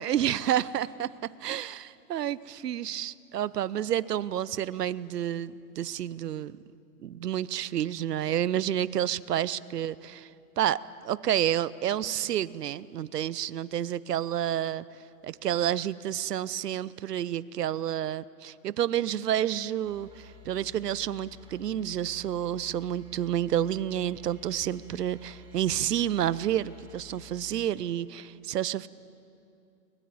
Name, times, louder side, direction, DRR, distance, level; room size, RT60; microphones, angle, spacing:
voice 1, 0.0-6.6 7.0-10.3 10.6-14.8 15.2-28.9, right 11 dB, 75° right, 19 dB, 0.9 m, -30 dB
sound 1, 19.8-27.7, left 7 dB, 10° right, 3.9 m, -52 dB
22.5 x 22.0 x 9.4 m, 2.7 s
hypercardioid pair, 140°, 48 cm